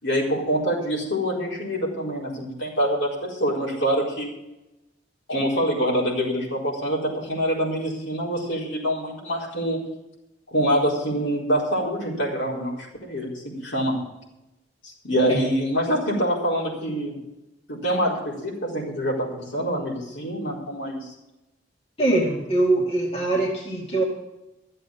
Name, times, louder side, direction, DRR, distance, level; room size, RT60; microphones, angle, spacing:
voice 1, 0.0-4.3 5.3-9.8 10.5-14.0 14.8-17.2 17.7-21.1, equal, 75° left, -4 dB, 4.5 m, -25 dB
voice 2, 22.0-24.0, right 2 dB, 35° left, -3 dB, 2.4 m, -22 dB
13.5 x 7.8 x 7.3 m, 0.95 s
head